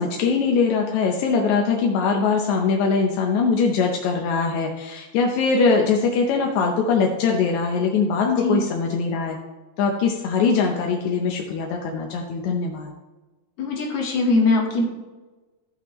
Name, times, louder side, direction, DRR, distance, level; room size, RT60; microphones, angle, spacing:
voice 1, 0.0-9.4 9.8-12.9, left 5 dB, 75° left, 1 dB, 1.8 m, -22 dB
voice 2, 8.2-8.6 13.6-14.8, left 3 dB, 50° left, -2 dB, 2.5 m, -21 dB
15.0 x 5.9 x 3.0 m, 1.2 s
omnidirectional pair, 4.1 m